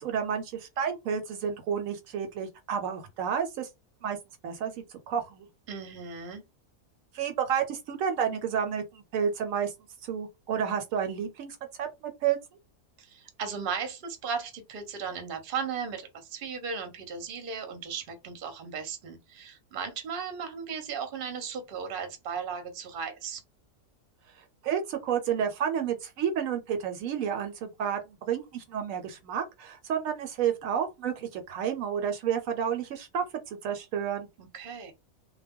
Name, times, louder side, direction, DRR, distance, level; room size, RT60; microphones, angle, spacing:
voice 1, 0.0-3.7 4.0-4.2 4.4-5.5 7.1-9.7 10.0-12.4 24.6-34.3, right 8 dB, 75° right, 0.9 m, -30 dB
voice 2, 5.7-6.4 13.0-23.4 34.4-34.9, right 6 dB, 50° right, 0.8 m, -36 dB
2.2 x 2.1 x 3.4 m
omnidirectional pair, 1.4 m